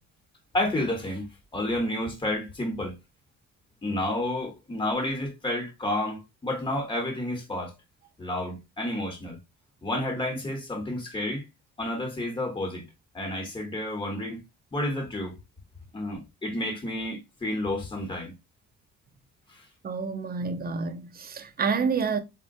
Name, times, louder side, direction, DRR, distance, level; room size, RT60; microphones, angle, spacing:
voice 1, 0.5-1.3 1.5-3.0 3.8-7.7 8.2-9.4 9.8-11.4 11.8-12.8 13.1-14.4 14.7-15.4 15.9-18.3 19.5-19.6, left 1 dB, 15° left, 1.0 m, -30 dB
voice 2, 19.8-22.2, right 5 dB, 30° right, 0.6 m, -28 dB
3.7 x 2.2 x 2.5 m
cardioid pair, 90°, 30 cm